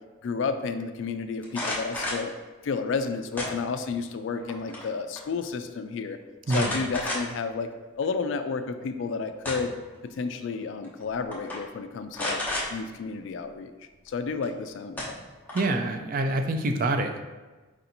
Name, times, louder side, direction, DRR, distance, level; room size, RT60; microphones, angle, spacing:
voice 1, 0.2-2.3 2.6-6.2 6.5-7.7 8.0-9.7 10.0-12.4 12.7-13.7 14.1-15.2, left 4 dB, 60° left, 8 dB, 0.3 m, -31 dB
sound 1, 1.4-2.3 3.4-4.0 4.4-4.9 5.2-5.3 6.5-7.5 8.0-8.1 9.1-9.9 10.8-11.0 11.3-11.6 12.1-12.7 14.4-14.5 15.0-15.8, left 1 dB, 10° left, 0.8 m, -32 dB
voice 2, 6.5-6.8 15.5-17.2, right 2 dB, 40° right, 5 dB, 0.4 m, -26 dB
4.7 x 2.6 x 4.3 m, 1.2 s
head